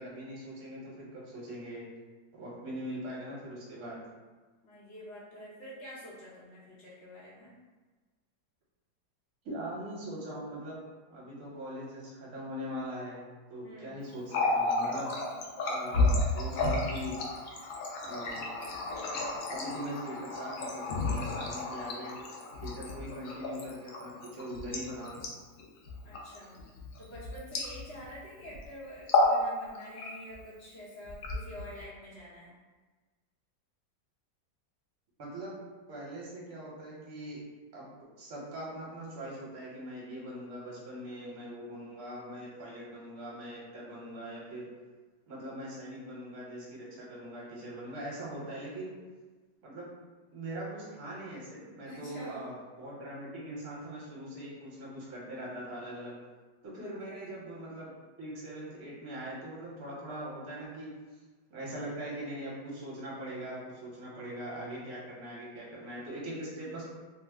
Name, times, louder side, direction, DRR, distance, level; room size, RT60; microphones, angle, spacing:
voice 1, 0.0-1.8 2.3-4.0 9.4-10.8 11.1-13.2 13.5-15.1 15.6-17.2 18.0-18.4 19.5-22.2 22.6-25.2 35.2-35.5 35.9-37.4 37.7-37.9 38.2-44.7 45.3-48.9 49.6-49.9 50.3-56.1 56.6-60.9 61.5-66.8, equal, 60° right, -5 dB, 1.2 m, -41 dB
voice 2, 4.6-7.5 13.6-14.0 26.0-26.6 27.0-32.5 51.8-52.5 56.8-57.4, equal, 50° left, -7 dB, 0.9 m, -47 dB
Water tap faucet, 14.1-28.2 28.4-28.7 29.0-29.4 29.7-30.4 31.0-31.8, left 2 dB, 70° left, 0.8 m, -32 dB
3.0 x 2.0 x 3.4 m, 1.3 s
omnidirectional pair, 1.9 m